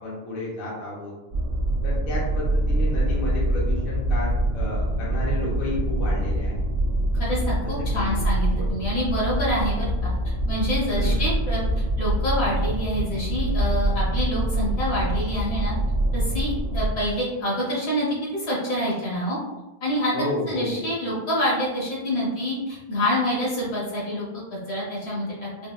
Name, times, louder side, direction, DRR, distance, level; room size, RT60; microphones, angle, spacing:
voice 1, 0.0-1.1 1.8-6.7 7.6-8.2 8.6-8.7 10.9-11.3 20.1-20.9, left 1 dB, 60° left, -6 dB, 0.9 m, -32 dB
sound 1, 1.3-16.9, right 1 dB, 40° right, 1.1 m, -25 dB
voice 2, 7.2-10.1 10.5-11.6 12.0-15.7 16.1-19.4 19.8-20.1 20.5-24.4 24.7-25.5, equal, 85° left, -6 dB, 1.4 m, -27 dB
3.4 x 2.2 x 2.3 m, 1.1 s
omnidirectional pair, 1.1 m